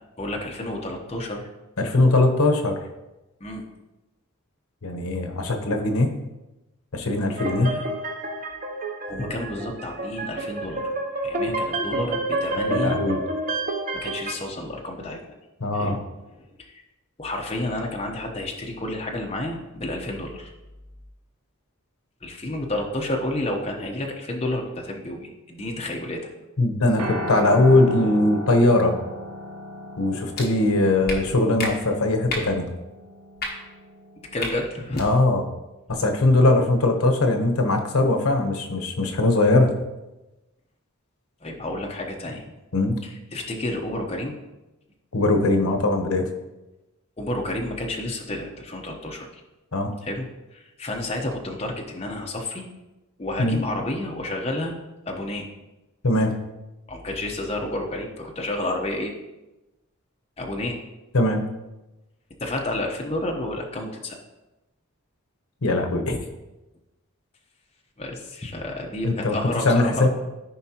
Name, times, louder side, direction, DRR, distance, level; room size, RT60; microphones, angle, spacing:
voice 1, 0.2-1.5 3.4-3.6 7.4-7.9 9.1-10.9 11.2-13.0 13.9-15.2 15.7-16.0 16.3-16.8 17.2-20.5 22.2-26.3 34.3-35.0 41.4-42.4 43.0-44.4 47.2-49.4 50.0-52.7 53.2-54.8 55.1-55.5 56.9-59.1 60.4-60.8 62.4-64.2 66.1-66.2 68.0-70.1, left 1 dB, 25° left, 0 dB, 0.9 m, -30 dB
voice 2, 1.8-2.8 4.8-6.1 6.9-7.8 12.6-13.2 15.6-16.0 26.6-29.0 30.0-32.7 35.0-35.4 35.9-39.7 42.7-43.0 45.1-46.2 49.7-49.9 53.4-53.6 56.0-56.3 61.1-61.4 65.6-66.1 69.0-69.4 69.6-70.1, left 2 dB, 80° left, 4 dB, 1.0 m, -20 dB
sound 1, 7.4-14.3, right 2 dB, 35° right, 0.6 m, -29 dB
Piano, 27.0-35.3, left 1 dB, 80° right, 1.0 m, -36 dB
sound 2, 30.3-30.5 31.0-31.2 31.6-31.7 32.3-32.5 33.3-33.5 34.4-34.5 34.9-35.1, left 2 dB, 45° left, 1.5 m, -29 dB
13.5 x 5.1 x 2.9 m, 1.0 s
head